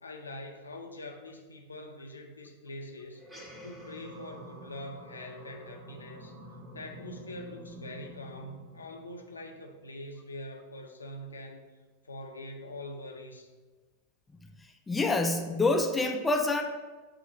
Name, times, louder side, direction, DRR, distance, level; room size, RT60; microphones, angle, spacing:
voice 1, 0.0-6.4 6.7-11.7 12.0-13.5, left 1 dB, 75° left, 3 dB, 0.5 m, -44 dB
sound 1, 3.1-9.9, equal, 15° right, 0.9 m, -48 dB
voice 2, 14.9-16.6, left 2 dB, 10° left, 3 dB, 0.4 m, -26 dB
7.3 x 2.4 x 3.0 m, 1.3 s
figure-of-eight pair, 90°, 0 cm